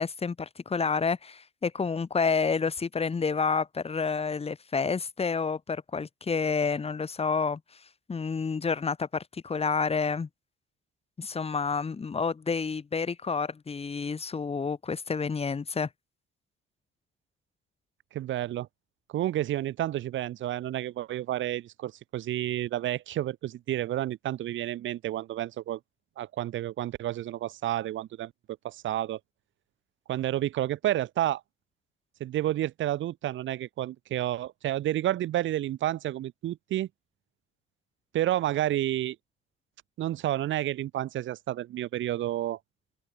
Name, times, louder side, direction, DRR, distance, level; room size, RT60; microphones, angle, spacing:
voice 1, 0.0-7.6 8.1-10.3 11.2-15.9, left 5 dB, 30° left, 4.7 m, -29 dB
voice 2, 18.1-18.7 19.1-25.8 26.2-28.3 28.6-29.2 30.1-31.4 32.2-36.9 38.1-39.2 40.0-42.6, right 13 dB, 80° right, 5.4 m, -30 dB
open air
cardioid pair, 115°, 20 cm